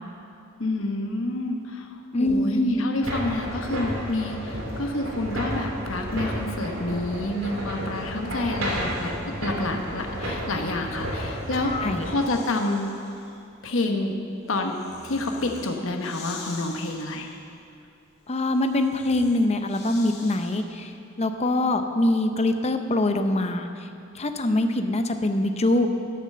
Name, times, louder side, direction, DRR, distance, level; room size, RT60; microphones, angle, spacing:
voice 1, 0.6-11.7 12.0-12.9 13.6-14.2 14.5-14.7 15.0-17.3, left 2 dB, 75° left, 3 dB, 1.1 m, -28 dB
voice 2, 2.1-2.8 11.6-12.1 18.3-20.9 21.2-23.7 24.1-25.9, left 1 dB, 30° left, 7 dB, 0.6 m, -23 dB
sound 1, 3.0-12.1, equal, 85° right, 2.9 m, -32 dB
Breathing, 7.4-9.4 10.6-20.9, left 3 dB, 55° left, 1.9 m, -47 dB
12.5 x 6.7 x 6.7 m, 2.5 s
head